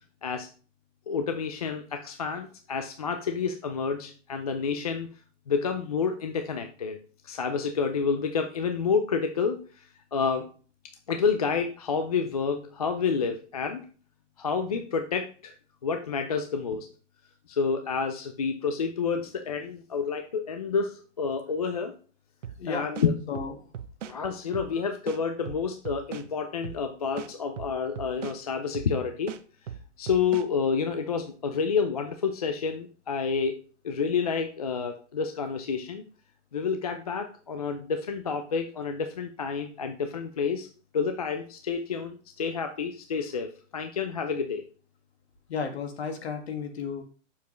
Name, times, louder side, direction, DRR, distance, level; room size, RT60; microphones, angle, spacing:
voice 1, 1.1-5.1 5.5-7.0 7.2-9.6 10.1-10.5 11.1-13.8 14.4-15.5 15.8-16.9 17.5-21.9 22.7-23.1 24.0-29.4 30.0-33.6 33.8-36.0 36.5-40.7 40.9-44.6, left 5 dB, 30° left, 6 dB, 0.4 m, -29 dB
sound 1, 22.4-22.6 22.9-24.2 24.5-24.7 25.1-26.3 26.6-26.8 27.2-28.4 28.7-28.9 29.3-30.5, right 8 dB, 80° right, 0.9 m, -39 dB
voice 2, 22.6-22.9 23.3-23.7 24.7-24.8 45.5-47.0, left 5 dB, 60° left, 5 dB, 1.7 m, -33 dB
7.0 x 6.9 x 3.0 m, 0.39 s
hypercardioid pair, 170°, 37 cm